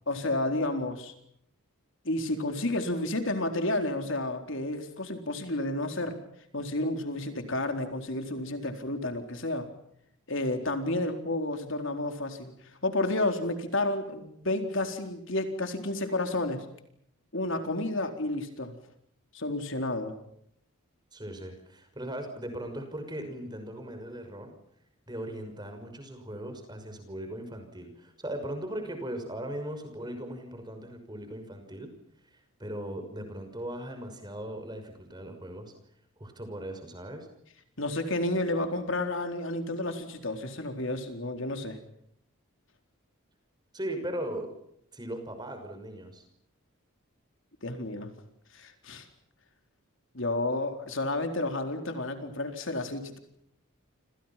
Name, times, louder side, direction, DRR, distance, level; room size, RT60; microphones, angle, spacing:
voice 1, 0.1-1.1 2.0-6.2 6.5-9.7 10.3-12.5 12.8-16.7 17.3-18.8 19.3-20.1 37.8-41.8 47.6-48.1 48.5-49.1 50.1-53.2, left 2 dB, 55° left, 6 dB, 4.1 m, -31 dB
voice 2, 21.1-24.5 25.1-31.9 32.3-35.7 36.2-37.3 43.7-44.5 44.9-46.2, right 1 dB, 20° right, 6 dB, 6.0 m, -38 dB
29.5 x 28.0 x 5.9 m, 0.72 s
head